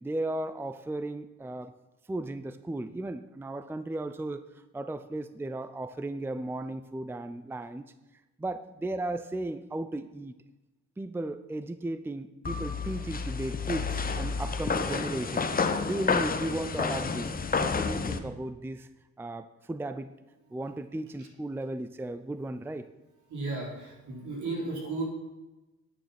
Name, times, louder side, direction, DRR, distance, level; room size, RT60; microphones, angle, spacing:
voice 1, 0.0-1.7 2.1-4.4 4.7-7.8 8.4-10.3 11.0-17.3 17.6-18.9 19.2-20.1 20.5-22.9, right 2 dB, 10° right, 12 dB, 0.5 m, -35 dB
sound 1, 12.5-18.2, left 5 dB, 30° left, 0.9 m, -30 dB
voice 2, 23.3-25.0, right 3 dB, 70° right, -1 dB, 4.3 m, -34 dB
10.0 x 9.4 x 5.9 m, 1.0 s
cardioid pair, 90°, 30 cm